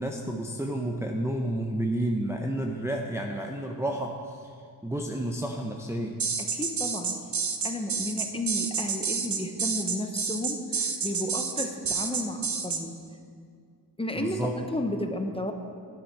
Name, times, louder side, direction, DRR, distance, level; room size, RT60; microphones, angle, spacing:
voice 1, 0.0-4.5 4.8-6.2 14.2-14.7, right 1 dB, 5° right, 1 dB, 0.7 m, -31 dB
sound 1, 6.2-12.8, right 5 dB, 45° right, 0.8 m, -29 dB
voice 2, 6.4-7.1 7.6-13.0 14.0-15.5, left 1 dB, 15° left, 5 dB, 0.9 m, -32 dB
12.0 x 9.4 x 4.6 m, 2.2 s
cardioid pair, 90°, 41 cm